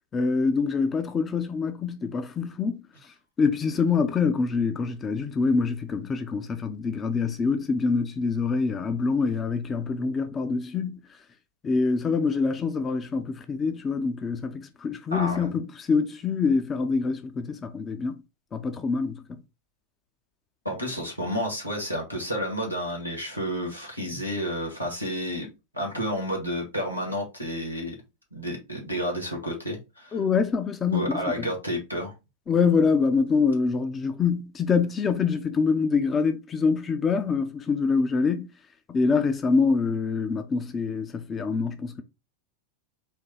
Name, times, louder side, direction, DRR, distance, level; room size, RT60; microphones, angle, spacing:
voice 1, 0.1-2.8 3.4-11.0 11.6-18.2 18.5-19.2 30.1-31.5 32.5-38.5 38.9-42.0, left 5 dB, 20° left, 0.5 m, -25 dB
voice 2, 15.1-15.5 20.6-25.5 25.7-27.9 28.3-30.2 30.9-32.1, equal, 90° left, 1.7 m, -30 dB
4.4 x 3.0 x 3.9 m
figure-of-eight pair, 90°, 0 cm